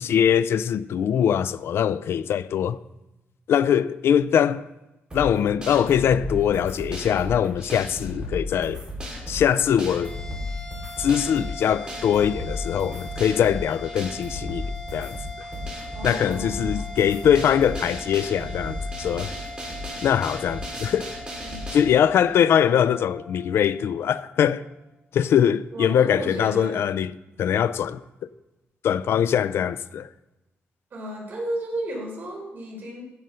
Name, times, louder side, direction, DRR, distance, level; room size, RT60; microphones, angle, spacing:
voice 1, 0.0-2.8 3.5-4.7 5.1-8.8 9.3-10.2 11.0-14.6 14.9-15.2 16.0-19.3 20.0-21.1 21.7-24.7 25.1-27.1 27.4-28.0 28.8-30.1, left 9 dB, 70° left, 0.4 m, -22 dB
sound 1, 5.1-21.8, left 1 dB, 20° right, 4.0 m, -34 dB
sound 2, 10.0-24.6, left 1 dB, 15° left, 2.8 m, -41 dB
voice 2, 15.9-16.9 21.4-21.6 25.7-26.8 30.9-33.0, right 1 dB, 45° right, 4.6 m, -33 dB
15.0 x 6.4 x 5.5 m
wide cardioid pair, 140°, 4 cm